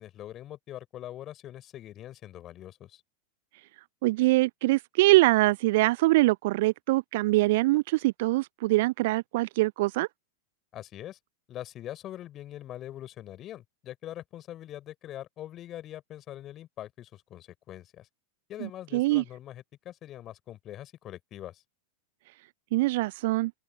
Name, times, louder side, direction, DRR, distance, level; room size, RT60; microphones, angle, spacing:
voice 1, 0.0-3.0 10.7-11.2 11.5-18.1 18.5-21.6, left 12 dB, 30° left, 4.7 m, -43 dB
voice 2, 4.0-10.1 18.6-19.2 22.7-23.5, right 20 dB, 50° right, 0.4 m, -23 dB
open air
figure-of-eight pair, 90°, 0 cm